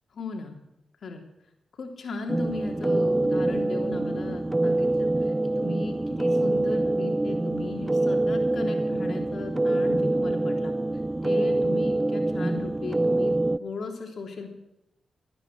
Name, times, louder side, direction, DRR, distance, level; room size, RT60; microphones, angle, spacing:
voice 1, 0.1-0.6 1.0-1.2 1.8-10.7 11.2-13.3 13.6-14.5, left 3 dB, 65° left, 3 dB, 3.3 m, -37 dB
sound 1, 2.3-13.6, right 2 dB, 15° right, 0.4 m, -25 dB
16.0 x 9.9 x 7.6 m, 0.89 s
cardioid pair, 80°, 0 cm